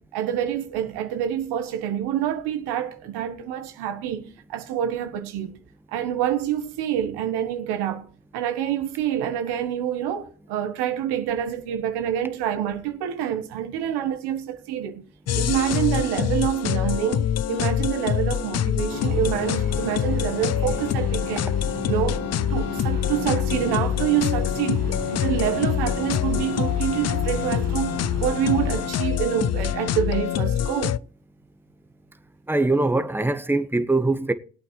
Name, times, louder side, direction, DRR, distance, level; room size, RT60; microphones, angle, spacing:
voice 1, 0.0-5.6 5.9-8.1 8.3-15.0 15.3-21.5 21.9-22.2 22.5-31.0, right 10 dB, 85° right, 1.3 m, -27 dB
sound 1, 15.3-31.0, left 10 dB, 40° left, 0.5 m, -25 dB
sound 2, 18.9-28.9, right 7 dB, 55° right, 1.3 m, -37 dB
sound 3, 22.9-28.4, left 5 dB, 65° left, 4.5 m, -45 dB
voice 2, 32.5-34.3, right 2 dB, 5° right, 1.2 m, -22 dB
20.5 x 8.5 x 3.2 m
supercardioid pair, 50°, 39 cm